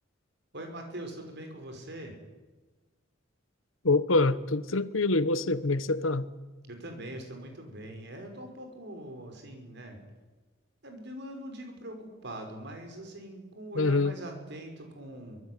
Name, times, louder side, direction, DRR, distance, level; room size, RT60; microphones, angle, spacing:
voice 1, 0.5-2.2 6.7-10.0 10.8-15.4, right 1 dB, 60° right, 5.5 m, -42 dB
voice 2, 3.8-6.3 13.7-14.1, left 3 dB, 85° left, 1.2 m, -25 dB
24.5 x 20.0 x 9.5 m
head